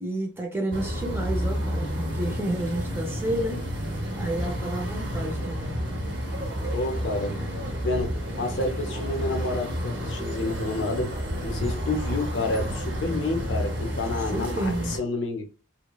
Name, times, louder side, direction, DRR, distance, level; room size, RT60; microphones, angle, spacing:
voice 1, 0.0-3.6 4.1-5.8 14.2-14.9, right 1 dB, 10° right, 0.5 m, -30 dB
sound 1, 0.7-15.0, equal, 60° right, 0.6 m, -30 dB
voice 2, 6.7-7.4 7.8-11.2 11.4-15.5, left 2 dB, 65° left, 0.6 m, -29 dB
2.9 x 2.0 x 2.3 m
head